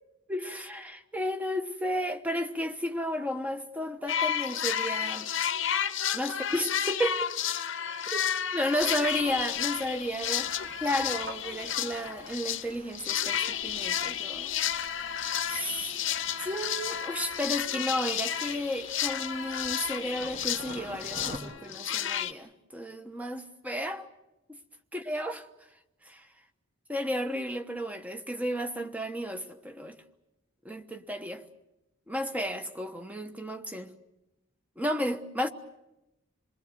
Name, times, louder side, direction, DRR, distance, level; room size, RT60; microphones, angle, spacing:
voice 1, 0.3-5.3 6.1-7.3 8.1-8.2 8.5-10.5 10.8-14.7 15.4-16.0 16.4-24.1 24.9-25.4 26.1-26.2 26.9-30.0 30.6-31.4 32.1-33.9 34.8-35.5, equal, 5° right, 1.1 m, -33 dB
sound 1, 4.1-12.7 12.9-22.3, left 9 dB, 55° left, 0.9 m, -32 dB
sound 2, 8.2-14.0, right 2 dB, 50° right, 3.3 m, -54 dB
sound 3, 8.8-21.4, right 1 dB, 30° right, 2.2 m, -49 dB
27.5 x 20.5 x 7.8 m
head